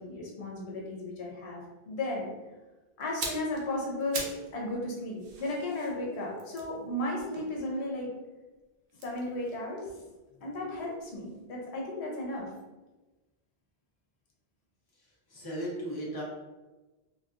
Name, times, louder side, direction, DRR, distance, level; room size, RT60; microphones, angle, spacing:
voice 1, 0.0-2.3 3.0-8.1 8.9-9.9 10.4-12.5, left 1 dB, 85° left, -2 dB, 1.0 m, -35 dB
sound 1, 3.0-4.5 4.8-8.1 8.9-10.9 11.2-11.4, right 3 dB, 80° right, 0.9 m, -42 dB
voice 2, 15.0-16.2, right 1 dB, 25° left, -6 dB, 0.8 m, -37 dB
3.8 x 2.3 x 2.5 m, 1.1 s
omnidirectional pair, 1.1 m